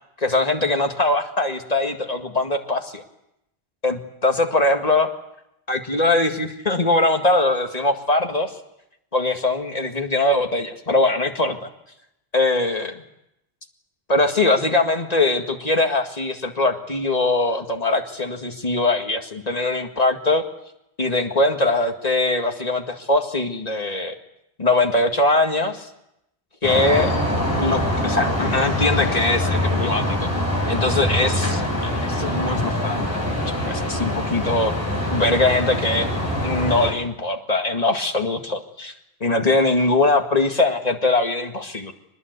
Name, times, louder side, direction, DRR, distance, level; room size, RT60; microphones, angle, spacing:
voice 1, 0.2-3.0 3.8-5.1 5.7-8.5 9.1-11.7 12.3-13.0 14.1-20.4 21.0-24.2 24.6-25.9 26.6-27.1 27.6-30.3 30.7-34.7 35.1-36.1 36.4-38.9 39.2-41.9, left 2 dB, 40° left, 4 dB, 2.1 m, -21 dB
sound 1, 26.6-36.9, left 1 dB, 15° right, 7.9 m, -24 dB
24.5 x 20.5 x 8.2 m, 0.85 s
omnidirectional pair, 1.1 m